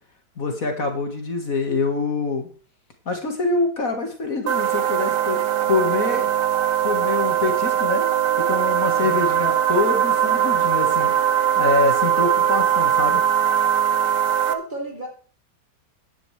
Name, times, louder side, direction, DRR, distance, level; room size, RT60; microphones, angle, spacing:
voice 1, 0.4-2.5 3.1-6.3 6.8-8.1 8.4-11.1 11.6-13.2, left 3 dB, 55° left, 4 dB, 2.2 m, -25 dB
sound 1, 4.5-14.5, right 10 dB, 85° right, 1.5 m, -20 dB
voice 2, 8.9-9.3 14.4-15.1, right 2 dB, 25° right, 0 dB, 3.3 m, -33 dB
14.0 x 10.5 x 3.3 m, 0.38 s
omnidirectional pair, 1.8 m